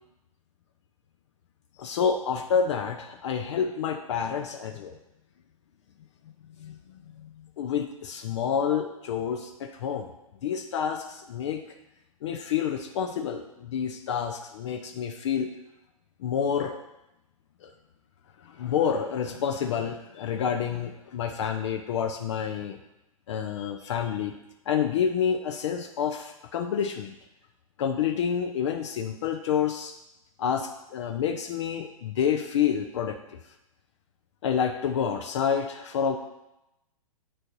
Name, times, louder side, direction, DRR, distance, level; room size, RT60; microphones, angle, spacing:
voice 1, 1.8-5.0 6.6-10.1 10.4-11.6 12.2-15.5 16.2-16.8 17.6-17.7 18.4-22.8 23.3-24.4 24.7-27.1 27.8-30.0 30.4-33.4 34.4-36.2, left 7 dB, 55° left, 5 dB, 0.5 m, -28 dB
8.4 x 4.3 x 2.6 m, 0.90 s
figure-of-eight pair, 120°, 18 cm